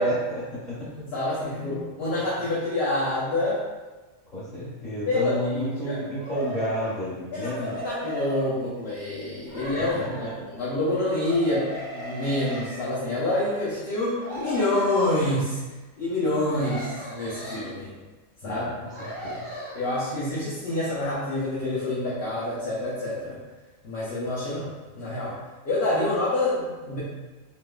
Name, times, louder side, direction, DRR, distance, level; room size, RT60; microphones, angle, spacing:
voice 1, 0.0-0.9 1.5-1.9 4.3-7.8 9.5-10.3 18.4-18.7 19.0-19.5, equal, 30° left, -11 dB, 1.6 m, -31 dB
voice 2, 0.9-3.6 5.1-6.0 7.3-15.6 16.0-17.9 18.4-18.6 19.7-23.4 23.8-24.7 24.9-25.4 25.6-27.0, left 1 dB, 55° left, -9 dB, 0.9 m, -27 dB
sound 1, 6.2-7.0 7.4-8.5 9.4-10.4 11.2-12.8 14.1-15.4 16.4-17.7 18.9-19.8, equal, 55° right, 1.4 m, -37 dB
3.3 x 3.0 x 2.2 m, 1.2 s
omnidirectional pair, 1.5 m